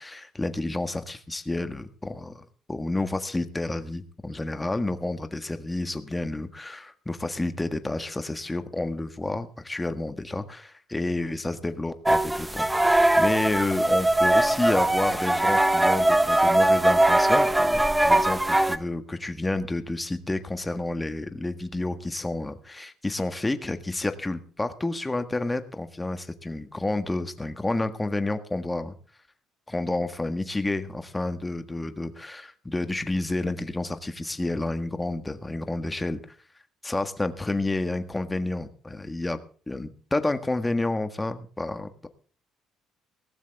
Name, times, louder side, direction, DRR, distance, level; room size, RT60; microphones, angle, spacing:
voice 1, 0.0-28.9 29.7-36.2 36.8-39.4 39.7-42.1, left 2 dB, 15° left, 9 dB, 1.6 m, -30 dB
sound 1, 12.1-18.8, right 1 dB, 10° right, 1.0 m, -21 dB
18.0 x 15.0 x 3.6 m, 0.42 s
cardioid pair, 105°, 0 cm